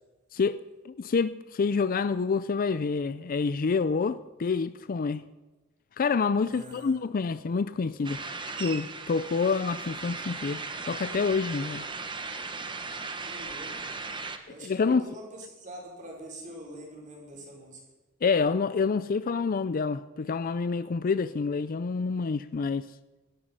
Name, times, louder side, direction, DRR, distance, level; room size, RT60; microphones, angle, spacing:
voice 1, 0.8-5.2 6.0-8.2 8.6-10.6 10.9-11.8 14.6-15.0 18.2-22.9, left 5 dB, 45° left, 0.4 m, -27 dB
voice 2, 6.5-6.9 13.2-13.7 14.5-17.8, right 1 dB, 40° right, 5.2 m, -44 dB
sound 1, 8.0-14.4, right 4 dB, 25° right, 1.1 m, -37 dB
17.5 x 13.0 x 5.5 m
head